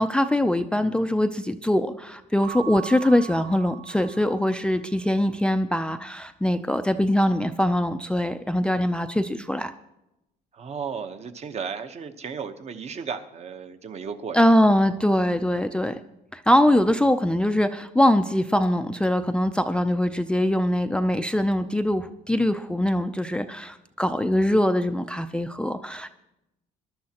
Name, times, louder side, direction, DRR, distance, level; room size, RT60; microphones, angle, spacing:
voice 1, 0.0-9.7 14.3-16.0 16.3-26.1, left 1 dB, 5° left, 9 dB, 0.4 m, -22 dB
Keyboard (musical) / Bell, 2.4-4.8, right 12 dB, 65° right, 0.6 m, -40 dB
voice 2, 10.5-14.4, right 6 dB, 40° right, 8 dB, 0.9 m, -34 dB
21.0 x 11.5 x 2.9 m, 0.91 s
cardioid pair, 110°, 17 cm